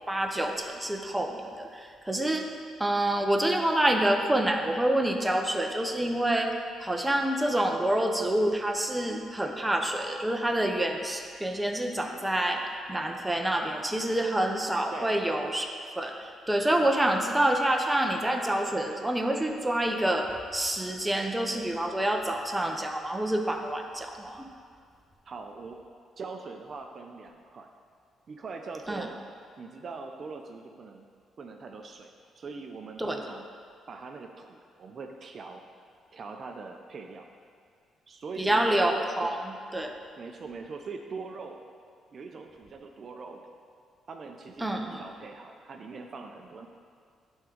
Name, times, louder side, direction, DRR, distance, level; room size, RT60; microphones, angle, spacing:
voice 1, 0.1-2.5 2.8-6.5 6.8-15.7 16.0-16.1 16.5-24.5 28.9-29.1 33.0-33.2 38.4-39.9 44.6-45.0, right 1 dB, 10° right, 3 dB, 0.6 m, -27 dB
voice 2, 14.9-15.2 25.2-25.8 26.2-27.7 28.3-29.2 29.6-31.1 31.4-33.5 33.9-35.6 36.1-37.3 38.1-38.7 39.2-39.3 40.2-41.6 42.1-43.6 44.1-46.7, right 4 dB, 50° right, 4 dB, 0.5 m, -42 dB
8.8 x 3.6 x 5.0 m, 2.2 s
cardioid pair, 90°, 0 cm